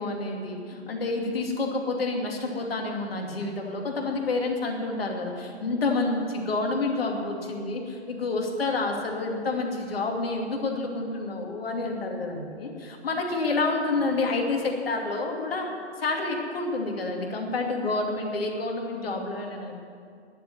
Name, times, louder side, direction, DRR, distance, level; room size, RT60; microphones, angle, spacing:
voice 1, 0.0-15.7 16.0-19.7, left 3 dB, 60° left, 1 dB, 2.7 m, -29 dB
10.5 x 10.5 x 9.4 m, 2.3 s
figure-of-eight pair, 130°, 34 cm